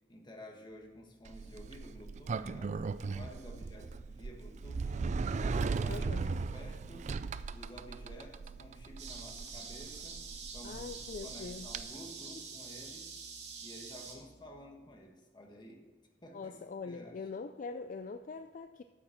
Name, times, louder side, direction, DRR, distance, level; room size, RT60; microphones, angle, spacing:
voice 1, 0.1-2.7 3.0-5.0 5.3-7.1 7.5-10.2 10.5-13.2 13.6-15.8 16.2-16.6 16.8-17.2, equal, 25° left, 2 dB, 1.4 m, -52 dB
sound 1, 0.7-15.0, left 1 dB, 20° right, 2.5 m, -65 dB
Sliding door, 1.3-11.8, right 4 dB, 45° right, 0.3 m, -38 dB
voice 2, 5.9-6.3 10.6-11.7 16.3-18.8, left 4 dB, 50° left, 9 dB, 0.3 m, -43 dB
sound 2, 9.0-14.1, right 5 dB, 85° right, 2.3 m, -46 dB
8.5 x 7.8 x 6.0 m, 1.2 s
head